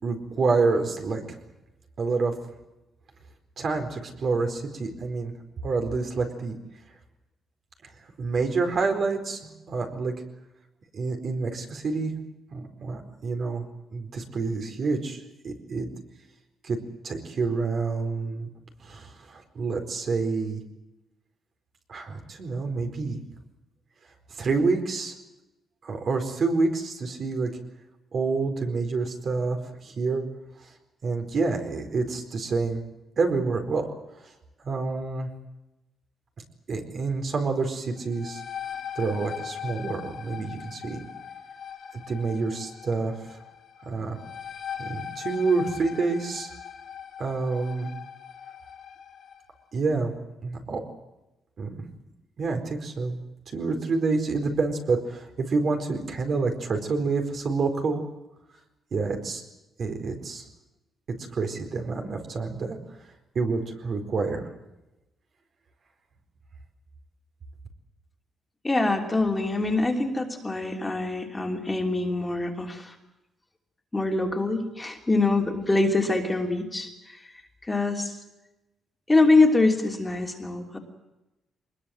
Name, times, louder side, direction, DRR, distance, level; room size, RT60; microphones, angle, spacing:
voice 1, 0.0-1.4 2.0-2.3 3.6-5.3 5.6-6.6 8.2-9.4 9.7-10.1 10.9-12.2 12.5-13.6 13.9-15.9 16.6-16.8 17.0-18.5 18.8-20.6 21.9-23.2 24.4-25.1 25.8-27.5 28.1-29.6 29.8-30.2 31.0-32.8 33.2-33.9 34.6-35.3 36.7-38.4 39.0-41.0 42.1-43.4 43.9-44.2 44.8-46.5 47.2-47.9 49.7-50.1 50.4-50.8 51.6-51.8 52.4-53.2 53.5-58.0 58.9-59.4 59.8-60.4 61.3-62.8 63.3-64.5, right 4 dB, 45° right, 4 dB, 4.4 m, -28 dB
sound 1, 38.0-49.5, left 8 dB, 55° left, 3.3 m, -40 dB
voice 2, 68.6-72.9 73.9-77.2 77.7-78.2 79.1-80.8, left 2 dB, 15° left, 2 dB, 3.1 m, -24 dB
24.0 x 21.0 x 7.8 m, 0.97 s
cardioid pair, 145°, 0 cm